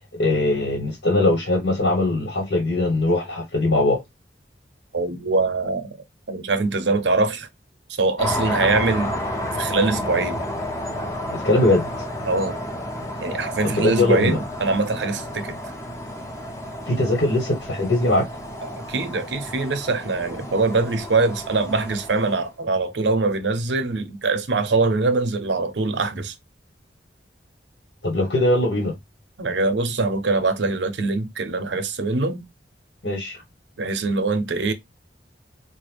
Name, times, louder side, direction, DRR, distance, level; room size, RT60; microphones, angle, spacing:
voice 1, 0.1-4.0 11.3-12.0 13.6-14.4 16.9-18.3 28.0-28.9 33.0-33.4, left 2 dB, 85° left, 1.2 m, -21 dB
voice 2, 4.9-7.5 8.0-9.2 9.5-10.5 12.3-12.6 13.2-15.6 18.6-26.3 29.4-32.4 33.8-34.7, right 3 dB, 85° right, 0.7 m, -23 dB
sound 1, 8.2-22.5, left 1 dB, 20° left, 0.8 m, -31 dB
4.7 x 2.1 x 3.3 m
head